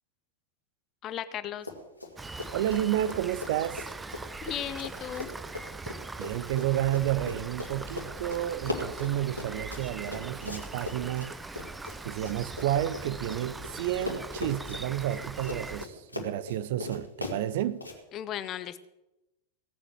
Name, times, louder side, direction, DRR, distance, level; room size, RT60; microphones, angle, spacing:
voice 1, 1.0-1.7 4.4-5.3 18.1-18.9, left 11 dB, 30° left, 0.8 m, -36 dB
Run, 1.6-2.1 2.4-13.7 14.0-18.0, left 2 dB, 85° left, 2.3 m, -39 dB
Rain, 2.2-15.9, right 3 dB, 10° right, 0.5 m, -41 dB
voice 2, 2.5-3.9 6.2-11.3 12.0-17.9, right 12 dB, 55° right, 0.6 m, -31 dB
17.0 x 7.4 x 7.6 m
figure-of-eight pair, 90°, 0 cm